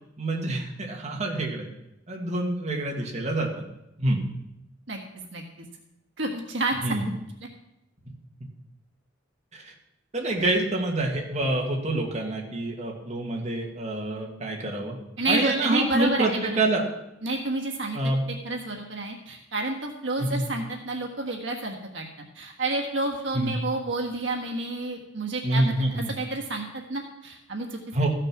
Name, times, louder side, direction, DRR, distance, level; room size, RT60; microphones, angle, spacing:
voice 1, 0.2-1.7 2.1-3.5 4.0-4.2 6.8-7.0 9.5-9.7 10.1-15.0 15.3-16.8 17.9-18.2 20.2-20.4 23.3-23.5 25.4-26.1 27.9-28.1, right 2 dB, 35° right, 0 dB, 1.9 m, -27 dB
voice 2, 6.2-6.8 15.2-16.6 17.2-18.0 18.4-22.1 22.3-25.6 25.9-27.8, right 2 dB, 70° right, 1 dB, 1.5 m, -29 dB
14.0 x 6.7 x 6.0 m, 0.85 s
head